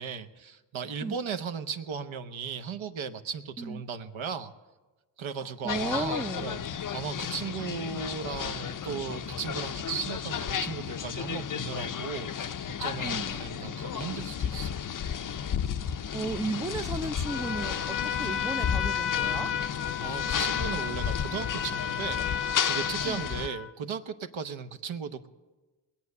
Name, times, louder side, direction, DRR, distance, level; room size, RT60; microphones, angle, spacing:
voice 1, 0.0-4.5 5.2-6.6 6.9-14.8 20.0-25.3, right 6 dB, 70° right, 8 dB, 1.0 m, -36 dB
voice 2, 5.4-6.6 13.0-13.3 15.8-19.5 23.1-23.3, right 3 dB, 5° right, 11 dB, 0.4 m, -35 dB
sound 1, 5.7-23.5, left 8 dB, 40° left, 0.6 m, -33 dB
Trumpet, 17.2-23.7, left 8 dB, 85° left, 0.8 m, -33 dB
20.5 x 8.4 x 6.6 m, 1.2 s
cardioid pair, 65°, 49 cm